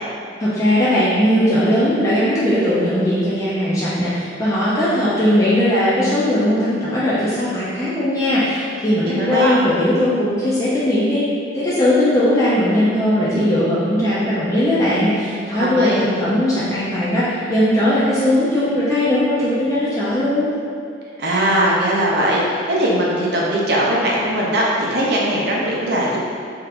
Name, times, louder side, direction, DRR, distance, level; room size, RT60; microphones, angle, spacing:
voice 1, 0.4-11.2 11.5-20.5, left 1 dB, 15° left, -10 dB, 0.3 m, -18 dB
voice 2, 9.0-9.6 15.6-16.0 21.2-26.2, right 1 dB, 55° right, -4 dB, 0.5 m, -19 dB
2.8 x 2.4 x 3.2 m, 2.3 s
head